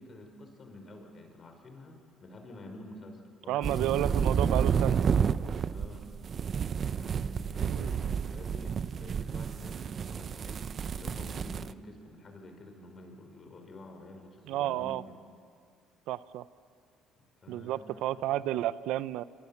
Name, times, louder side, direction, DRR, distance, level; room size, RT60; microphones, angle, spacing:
voice 1, 0.0-4.7 5.7-6.1 6.9-15.2 17.4-18.4, left 2 dB, 35° left, 4 dB, 5.4 m, -49 dB
voice 2, 3.5-5.0 7.6-7.9 14.5-15.0 16.1-16.4 17.5-19.2, right 13 dB, 80° right, 16 dB, 0.7 m, -31 dB
sound 1, 3.6-11.7, right 7 dB, 40° right, 0.7 m, -30 dB
26.5 x 25.0 x 7.3 m, 2.1 s
cardioid pair, 110°, 0 cm